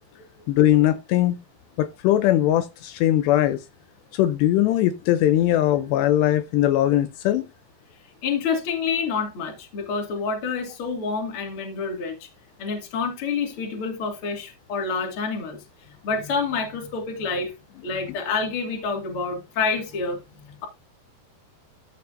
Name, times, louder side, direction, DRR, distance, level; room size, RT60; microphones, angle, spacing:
voice 1, 0.5-1.4 1.8-3.6 4.1-7.5, left 13 dB, 80° left, 2.7 m, -20 dB
voice 2, 8.2-12.3 12.6-15.6 16.0-17.5 17.8-20.7, left 5 dB, 35° left, 2.5 m, -28 dB
13.5 x 6.9 x 2.6 m
omnidirectional pair, 5.0 m